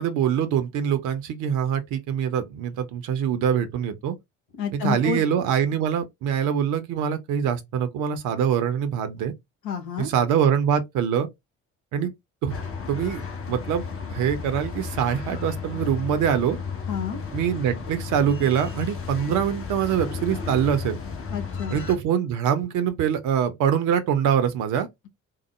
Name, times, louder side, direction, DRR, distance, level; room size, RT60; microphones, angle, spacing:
voice 1, 0.0-4.1 4.7-9.3 10.0-11.3 11.9-12.1 12.4-12.6 12.9-13.2 13.5-13.8 14.1-16.6 17.3-21.0 21.7-24.9, right 8 dB, 50° right, 0.7 m, -24 dB
voice 2, 4.6-5.2 9.6-10.1 16.9-17.2 21.3-21.8, left 7 dB, 60° left, 1.2 m, -29 dB
sound 1, 12.5-21.9, left 5 dB, 35° left, 1.1 m, -33 dB
3.7 x 2.0 x 3.0 m
figure-of-eight pair, 50°, 40 cm